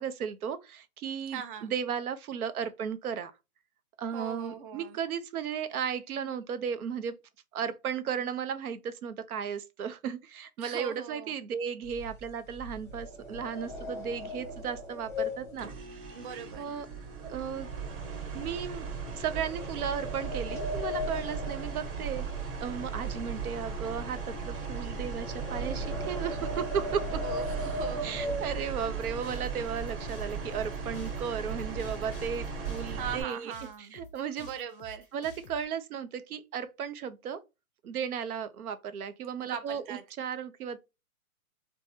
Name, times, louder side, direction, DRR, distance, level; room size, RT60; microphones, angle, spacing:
voice 1, 0.0-3.3 4.0-7.2 7.5-16.0 16.6-16.9 17.2-17.7 18.3-18.9 19.1-27.2 28.0-33.5 33.8-34.5 35.1-37.4 37.8-40.8, right 7 dB, 85° right, 0.6 m, -35 dB
voice 2, 1.3-1.7 4.1-5.0 10.6-11.3 16.1-16.8 27.2-28.3 32.9-33.9 34.4-35.1 39.4-40.0, right 8 dB, 40° right, 0.4 m, -40 dB
sound 1, 11.8-17.2 17.5-17.8 18.3-18.5 19.3-22.6 22.9-29.1 29.7-29.8 30.1-30.4 30.7-31.4, left 1 dB, 5° left, 0.8 m, -38 dB
sound 2, 15.6-33.2, right 5 dB, 60° right, 1.6 m, -37 dB
sound 3, 28.8-35.6, left 5 dB, 40° left, 0.5 m, -51 dB
3.3 x 2.1 x 2.7 m
hypercardioid pair, 135°, 43 cm